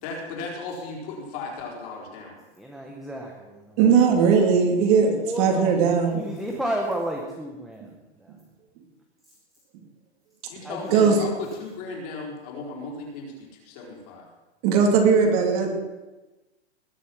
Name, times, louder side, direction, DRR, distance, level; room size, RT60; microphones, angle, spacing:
voice 1, 0.0-2.4 10.5-14.3, left 3 dB, 35° left, -1 dB, 4.5 m, -36 dB
voice 2, 2.6-4.1 4.8-8.3 9.3-9.4 10.6-10.9, right 1 dB, ahead, 0 dB, 0.9 m, -33 dB
voice 3, 3.8-6.3 10.9-11.2 14.6-15.7, right 6 dB, 35° right, 2 dB, 2.6 m, -19 dB
20.0 x 8.3 x 6.0 m, 1.1 s
hypercardioid pair, 160°, 34 cm